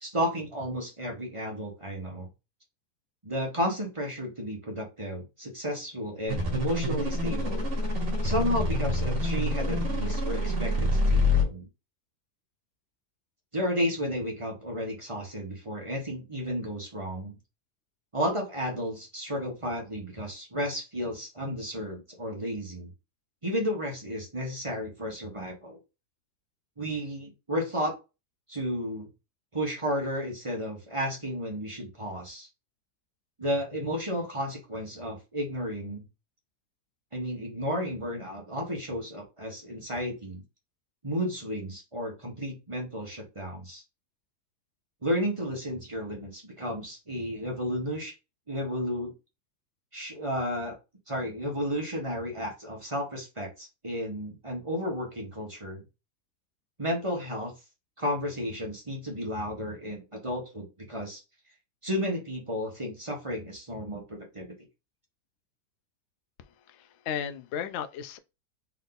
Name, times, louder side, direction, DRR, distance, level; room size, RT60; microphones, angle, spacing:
voice 1, 0.0-2.3 3.2-7.6 8.2-11.7 13.5-17.4 18.1-22.9 23.4-25.8 26.8-28.0 28.5-29.1 29.5-32.5 33.4-36.1 37.1-40.4 41.0-43.8 45.0-48.1 48.5-49.1 49.9-50.8 51.1-55.8 56.8-57.5 58.0-61.2 61.8-64.5, equal, 25° right, 0.9 m, -32 dB
sound 1, 6.3-11.4, left 2 dB, 50° right, 1.6 m, -26 dB
voice 2, 66.4-68.2, left 8 dB, 75° left, 0.6 m, -35 dB
3.5 x 2.7 x 3.8 m
omnidirectional pair, 1.7 m